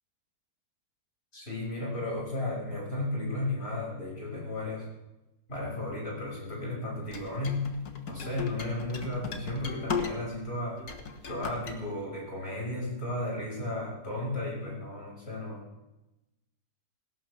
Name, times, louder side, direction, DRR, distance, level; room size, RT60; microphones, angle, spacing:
voice 1, 1.3-4.9 5.5-7.7 8.1-10.8 11.3-15.7, left 2 dB, 40° left, -3 dB, 6.3 m, -34 dB
sound 1, 7.1-10.4 10.8-11.8, left 5 dB, 75° left, 1.8 m, -36 dB
19.0 x 17.5 x 3.3 m, 0.95 s
omnidirectional pair, 1.7 m